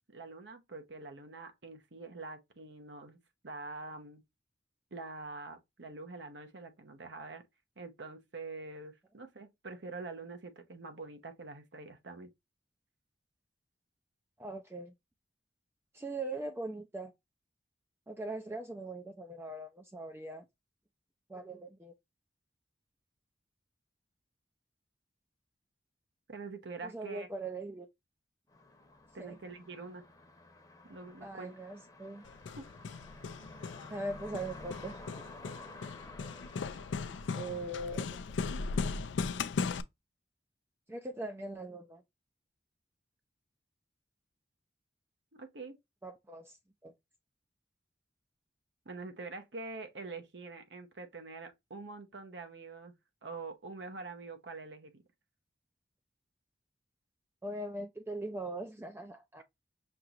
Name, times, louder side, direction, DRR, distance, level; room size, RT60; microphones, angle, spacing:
voice 1, 0.1-3.2 3.4-4.2 4.9-7.4 7.8-12.3 26.3-27.3 29.1-30.0 30.9-31.5 32.6-32.7 45.4-45.8 48.8-52.9 53.2-55.0, right 3 dB, 75° right, 0.9 m, -45 dB
voice 2, 14.4-14.9 15.9-17.1 18.1-20.4 21.3-21.9 26.8-27.9 29.2-29.4 31.2-32.2 33.9-35.0 37.3-38.0 40.9-42.0 46.0-46.6 46.8-46.9 57.4-59.4, right 2 dB, 15° right, 0.4 m, -40 dB
sound 1, 28.5-38.7, left 2 dB, 20° left, 0.9 m, -52 dB
Hammer, 32.3-39.8, left 4 dB, 90° left, 0.4 m, -38 dB
5.9 x 2.9 x 2.4 m
head